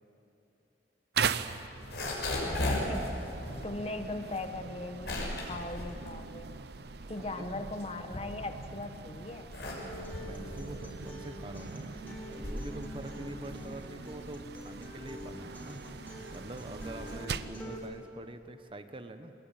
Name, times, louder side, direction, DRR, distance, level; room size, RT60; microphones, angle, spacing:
sound 1, 1.1-17.6, right 6 dB, 65° right, 0.7 m, -41 dB
sound 2, 1.7-7.0 7.3-8.8 9.2-18.0, left 1 dB, 65° left, 6.3 m, -38 dB
voice 1, 2.4-3.1 3.6-6.5 7.1-9.5, left 2 dB, 35° left, 8 dB, 1.2 m, -39 dB
voice 2, 7.2-7.6 10.2-19.3, right 1 dB, 30° right, 8 dB, 1.1 m, -45 dB
Acoustic guitar, 9.8-17.8, equal, 10° left, 4.2 m, -46 dB
23.0 x 20.5 x 9.2 m, 2.9 s
head